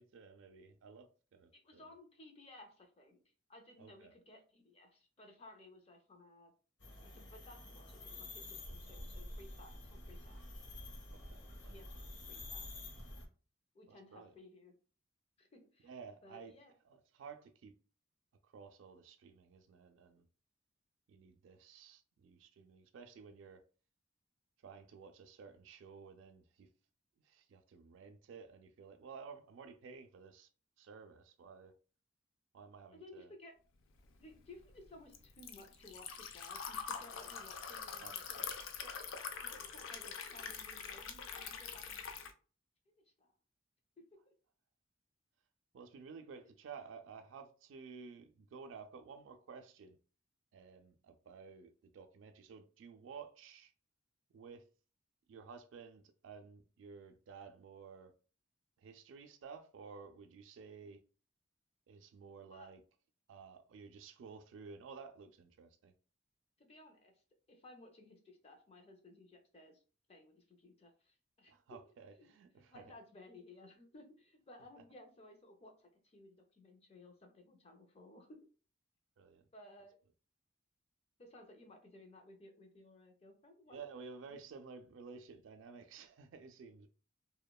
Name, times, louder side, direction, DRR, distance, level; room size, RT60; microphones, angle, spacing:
voice 1, 0.0-1.9 3.8-4.2 11.1-11.8 12.3-12.4 13.9-14.3 15.8-16.5 16.8-17.7 18.4-20.3 21.1-23.6 24.6-26.7 27.2-30.5 30.8-31.7 32.5-33.3 38.0-38.5 45.7-50.0 50.5-53.7 54.3-54.7 55.3-58.1 58.8-61.0 61.9-62.8 63.3-65.9 71.5-72.9 79.2-79.4 83.7-86.9, right 5 dB, 75° right, 0.3 m, -53 dB
voice 2, 1.5-3.2 3.5-6.5 7.0-10.4 11.5-11.9 12.3-12.6 13.7-14.7 15.4-15.9 16.2-16.7 32.9-33.5 34.2-38.4 38.8-38.9 39.5-42.0 43.2-43.3 44.1-44.3 62.5-62.7 66.6-67.1 67.5-69.8 70.1-71.8 72.2-78.4 79.5-80.0 81.2-83.8, left 2 dB, 30° left, 0.5 m, -58 dB
sound 1, 6.8-13.3, left 2 dB, 65° left, 0.7 m, -49 dB
Liquid, 34.0-42.3, left 6 dB, 85° left, 0.4 m, -44 dB
2.9 x 2.1 x 2.2 m
head